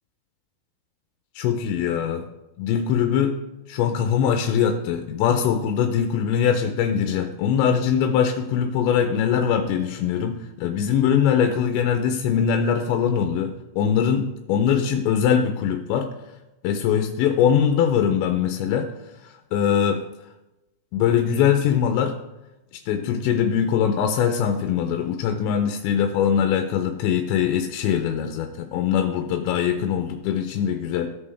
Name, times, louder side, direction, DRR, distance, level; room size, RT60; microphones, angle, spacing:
voice 1, 1.4-2.2 2.6-3.3 3.7-16.1 16.6-18.9 19.2-20.0 20.9-22.1 22.9-31.1, left 8 dB, 85° left, 6 dB, 2.9 m, -22 dB
16.0 x 5.4 x 3.3 m, 0.97 s
omnidirectional pair, 5.1 m